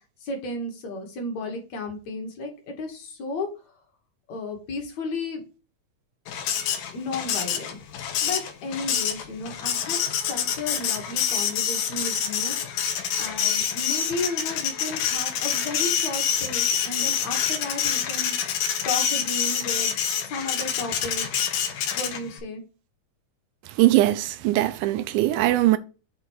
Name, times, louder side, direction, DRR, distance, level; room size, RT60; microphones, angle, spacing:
voice 1, 0.2-3.5 4.3-5.4 6.9-7.8 8.2-12.8 13.2-18.3 18.9-20.0 20.2-21.3 22.0-22.6, left 2 dB, 60° left, 2.3 m, -33 dB
Printer, 6.3-22.4, left 8 dB, 80° left, 2.5 m, -27 dB
voice 2, 23.8-25.8, right 15 dB, 80° right, 2.0 m, -20 dB
6.7 x 3.7 x 4.5 m
omnidirectional pair, 3.7 m